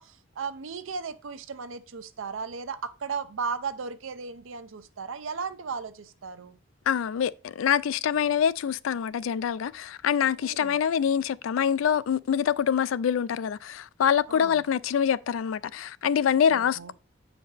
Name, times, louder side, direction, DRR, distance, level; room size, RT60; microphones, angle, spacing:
voice 1, 0.0-6.6 10.4-10.8 14.3-14.6 16.5-16.9, right 5 dB, 85° right, 0.6 m, -36 dB
voice 2, 6.9-16.9, left 8 dB, 85° left, 0.3 m, -25 dB
8.0 x 5.0 x 3.3 m
head